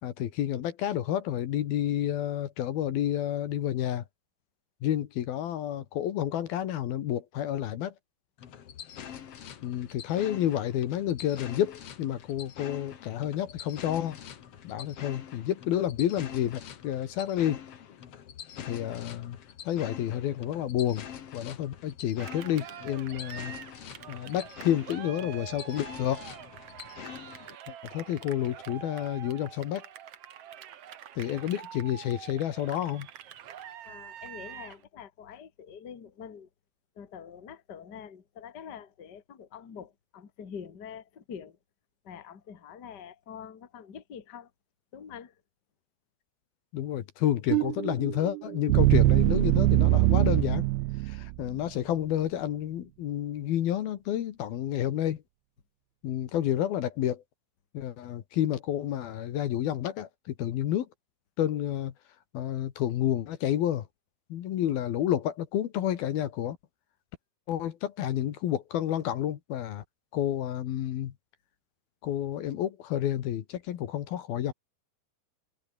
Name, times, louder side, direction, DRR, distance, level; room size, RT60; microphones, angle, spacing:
voice 1, 0.0-4.1 4.8-7.9 9.6-14.2 14.6-17.6 18.6-19.4 19.6-21.1 21.3-23.5 24.1-26.3 27.7-29.9 31.2-33.1 46.7-50.7 51.0-55.2 56.0-57.2 57.7-60.9 61.4-61.9 62.3-63.9 64.3-66.6 67.5-69.8 70.1-71.1 72.0-74.5, left 11 dB, 70° left, 3.2 m, -30 dB
sound 1, 8.4-27.6, left 9 dB, 50° left, 1.9 m, -45 dB
Cheering, 22.2-34.8, right 10 dB, 65° right, 1.5 m, -45 dB
voice 2, 33.8-36.5 37.0-41.6 42.0-44.5 44.9-45.3, left 7 dB, 35° left, 2.0 m, -45 dB
sound 2, 47.5-51.6, right 22 dB, 80° right, 2.4 m, -23 dB
omnidirectional pair, 4.9 m